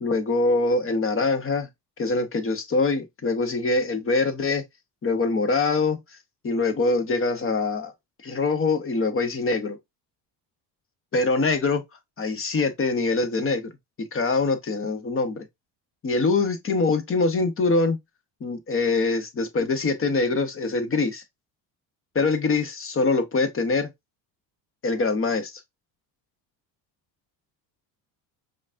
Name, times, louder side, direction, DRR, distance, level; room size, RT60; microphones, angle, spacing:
voice 1, 0.0-1.7 2.0-4.6 5.0-6.0 6.4-7.9 8.2-9.8 11.1-11.8 12.2-13.7 14.1-15.4 16.0-18.0 18.4-21.2 22.1-23.9 24.8-25.5, left 3 dB, 25° left, 0.8 m, -24 dB
5.1 x 2.5 x 2.5 m
supercardioid pair, 80°, 50 cm